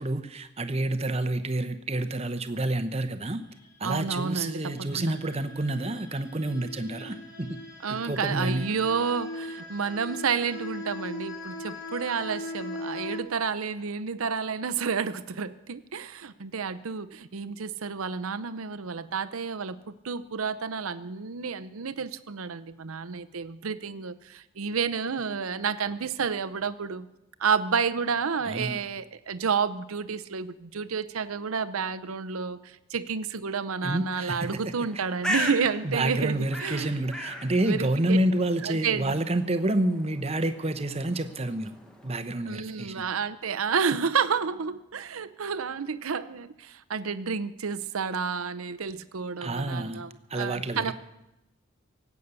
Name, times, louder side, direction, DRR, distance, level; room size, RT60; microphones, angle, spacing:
voice 1, 0.0-3.4 3.8-7.6 7.9-8.7 28.5-28.9 33.8-34.6 34.9-35.0 35.8-41.7 42.0-43.0 49.4-50.0 50.3-50.9, right 1 dB, 30° right, 9 dB, 0.9 m, -28 dB
voice 2, 3.8-5.2 7.8-27.1 27.4-36.9 37.6-38.2 38.6-39.2 42.5-50.9, right 5 dB, 85° right, 11 dB, 0.7 m, -30 dB
sound 1, 4.2-13.2, left 1 dB, 55° left, 2.1 m, -40 dB
Bird, 34.8-42.4, equal, 5° left, 1.4 m, -38 dB
18.0 x 8.3 x 8.2 m, 0.94 s
head